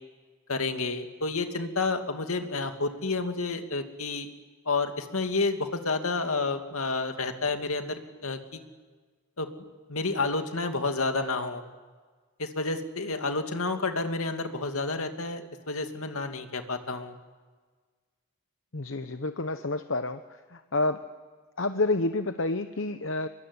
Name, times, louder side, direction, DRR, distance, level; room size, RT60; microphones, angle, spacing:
voice 1, 0.5-4.3 4.7-8.6 9.4-9.5 9.9-11.6 12.4-17.1, left 3 dB, 75° left, 6 dB, 2.4 m, -30 dB
voice 2, 18.7-20.2 20.5-21.0 21.6-23.3, left 2 dB, 55° left, 9 dB, 1.0 m, -29 dB
25.0 x 23.0 x 9.9 m, 1.4 s
head